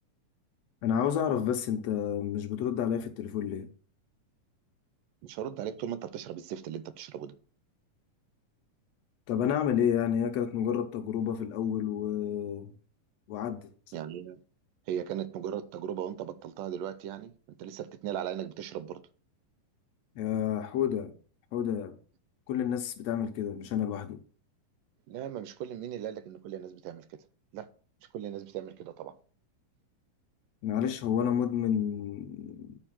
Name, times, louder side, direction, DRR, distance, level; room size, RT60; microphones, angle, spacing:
voice 1, 0.8-3.7 9.3-12.7 13.3-13.7 20.1-21.1 21.5-21.9 22.5-24.2 30.6-32.8, left 9 dB, 80° left, 1.5 m, -30 dB
voice 2, 5.2-7.4 13.9-14.4 14.9-17.3 17.6-19.0 25.1-27.2 27.5-27.7 28.1-29.2, right 10 dB, 80° right, 2.2 m, -37 dB
9.0 x 4.9 x 7.5 m
omnidirectional pair, 3.9 m